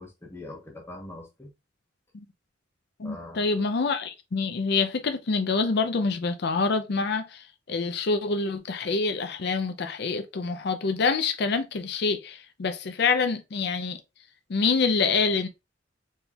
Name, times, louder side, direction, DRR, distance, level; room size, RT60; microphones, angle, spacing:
voice 1, 0.0-1.5 3.0-3.7, left 2 dB, 15° left, 1.0 m, -42 dB
voice 2, 3.0-14.0 14.5-15.5, left 4 dB, 60° left, 0.5 m, -26 dB
4.3 x 3.5 x 2.3 m
head